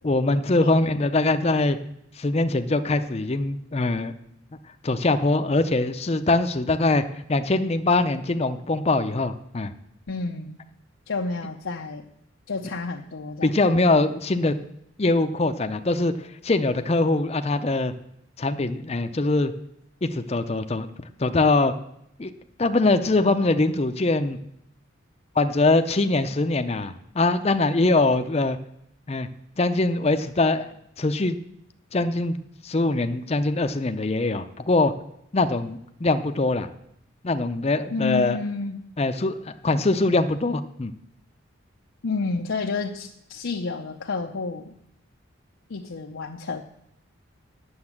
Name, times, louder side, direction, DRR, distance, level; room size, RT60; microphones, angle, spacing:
voice 1, 0.0-1.8 2.2-4.1 4.8-7.0 7.3-9.7 13.4-14.6 15.0-16.2 16.4-17.9 18.4-19.5 20.0-20.9 21.2-21.7 22.2-22.3 22.6-24.4 25.4-28.6 29.1-29.3 29.6-31.4 31.9-32.4 32.6-34.9 35.3-36.7 37.2-38.4 39.0-40.9, left 2 dB, 30° left, 9 dB, 0.6 m, -22 dB
voice 2, 10.1-10.6 11.1-12.1 12.5-13.5 37.9-38.9 42.0-44.8 45.7-46.6, left 4 dB, 85° left, 2 dB, 0.7 m, -30 dB
9.7 x 7.2 x 7.2 m, 0.77 s
head